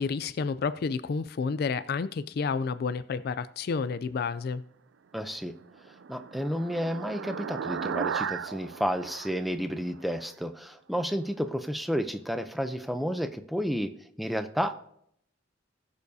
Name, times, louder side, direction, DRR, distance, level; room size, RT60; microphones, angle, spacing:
voice 1, 0.0-4.6, left 5 dB, 55° left, 14 dB, 0.4 m, -30 dB
voice 2, 5.1-5.5 6.1-13.9 14.2-14.7, equal, ahead, 9 dB, 0.6 m, -31 dB
sound 1, 5.5-10.3, right 7 dB, 75° right, 0.4 m, -36 dB
20.5 x 7.0 x 2.7 m, 0.70 s
head